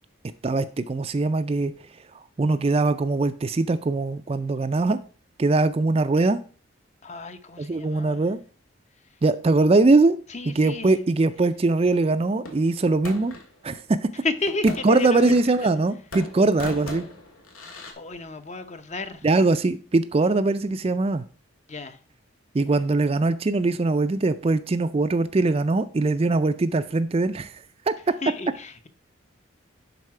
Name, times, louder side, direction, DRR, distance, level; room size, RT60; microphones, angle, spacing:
voice 1, 0.4-1.7 2.4-5.0 5.4-6.4 7.6-8.4 9.2-10.2 10.5-13.3 13.6-14.1 14.8-17.1 19.2-21.2 22.5-27.9, right 3 dB, 30° right, 0.4 m, -22 dB
voice 2, 7.0-8.2 10.3-10.9 14.2-15.3 15.6-15.7 18.0-19.3 21.7-22.0 28.2-28.9, left 3 dB, 35° left, 0.7 m, -32 dB
sound 1, 12.4-13.5 14.5-15.8 16.1-17.9, left 2 dB, 90° left, 2.0 m, -38 dB
11.0 x 4.1 x 4.8 m
head